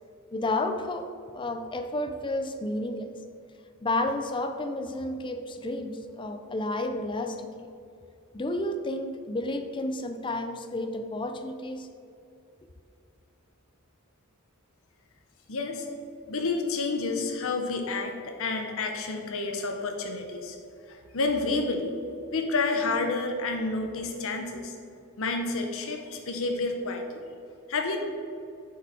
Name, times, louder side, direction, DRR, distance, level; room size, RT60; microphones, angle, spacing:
voice 1, 0.3-3.1 3.8-7.7 8.3-11.9, left 1 dB, 20° left, 8 dB, 0.4 m, -31 dB
voice 2, 15.5-15.9 16.3-20.6 20.9-22.0 22.3-24.8 25.2-27.2 27.7-28.0, left 3 dB, 65° left, 4 dB, 0.8 m, -29 dB
6.9 x 5.0 x 4.3 m, 2.5 s
head